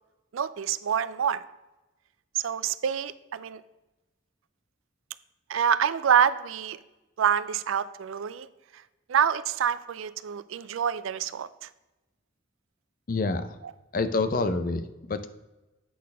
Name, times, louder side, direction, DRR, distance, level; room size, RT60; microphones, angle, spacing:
voice 1, 0.3-1.4 2.3-3.6 5.5-6.8 7.2-8.5 9.1-11.7, right 8 dB, 90° right, 16 dB, 0.4 m, -26 dB
voice 2, 13.1-13.6 13.9-15.3, left 3 dB, 45° left, 11 dB, 0.5 m, -27 dB
8.4 x 4.3 x 5.3 m, 1.1 s
head